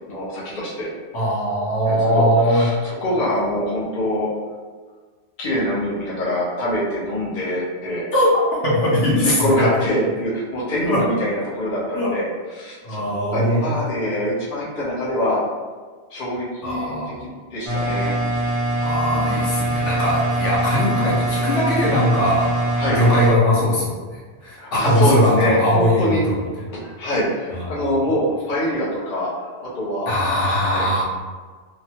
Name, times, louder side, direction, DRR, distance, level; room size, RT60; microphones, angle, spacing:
voice 1, 0.1-0.9 1.9-4.3 5.4-8.0 9.0-12.3 12.6-15.4 16.1-18.2 19.1-19.6 22.8-23.0 24.6-26.2 26.7-29.3 29.6-30.1 30.7-30.9, equal, 45° left, -8 dB, 0.9 m, -24 dB
voice 2, 1.1-2.9 8.1-8.3 8.6-9.7 10.9-11.0 11.9-12.1 12.8-13.8 16.6-17.3 18.8-22.6 22.9-26.4 27.5-27.8 30.1-31.0, equal, 75° left, -6 dB, 1.2 m, -20 dB
sound 1, 17.7-23.3, right 1 dB, 40° right, 0.5 m, -23 dB
3.0 x 2.1 x 2.8 m, 1.5 s
omnidirectional pair, 1.2 m